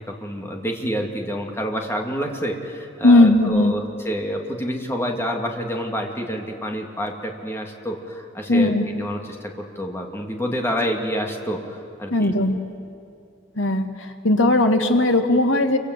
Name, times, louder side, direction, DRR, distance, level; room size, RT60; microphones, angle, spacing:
voice 1, 0.0-12.3, equal, 15° left, 1 dB, 2.5 m, -28 dB
voice 2, 3.0-3.7 8.5-8.8 12.1-12.6 13.6-15.8, left 2 dB, 80° left, 5 dB, 2.0 m, -17 dB
28.0 x 24.5 x 8.2 m, 2.5 s
head